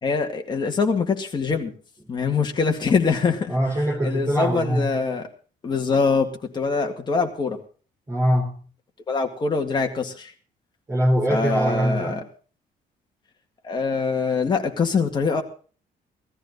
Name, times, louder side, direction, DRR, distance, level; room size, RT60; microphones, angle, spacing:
voice 1, 0.0-1.7 2.1-3.5 4.0-5.3 5.6-7.6 9.1-10.3 11.3-12.2 13.6-15.4, left 4 dB, 25° left, 3 dB, 2.0 m, -23 dB
voice 2, 3.5-4.9 8.1-8.5 10.9-12.2, equal, 15° right, 2 dB, 3.7 m, -22 dB
17.5 x 14.0 x 4.0 m, 0.40 s
cardioid pair, 175°, 17 cm